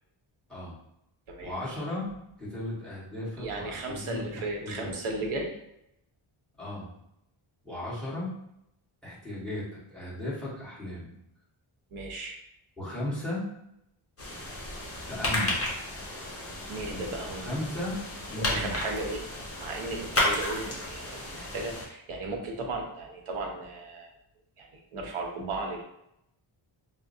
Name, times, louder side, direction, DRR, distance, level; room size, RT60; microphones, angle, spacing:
voice 1, 1.4-2.1 2.4-5.0 6.6-6.9 7.6-8.4 9.0-11.1 12.8-13.5 15.1-15.6 17.3-18.8, left 1 dB, ahead, -8 dB, 1.3 m, -36 dB
voice 2, 3.4-5.5 11.9-12.4 16.7-17.5 18.4-19.2 19.6-24.1 24.6-25.8, right 2 dB, 80° right, 1 dB, 0.9 m, -35 dB
sound 1, 14.2-21.9, left 2 dB, 30° left, 0.8 m, -33 dB
4.8 x 2.0 x 2.6 m, 0.80 s
wide cardioid pair, 160°, 49 cm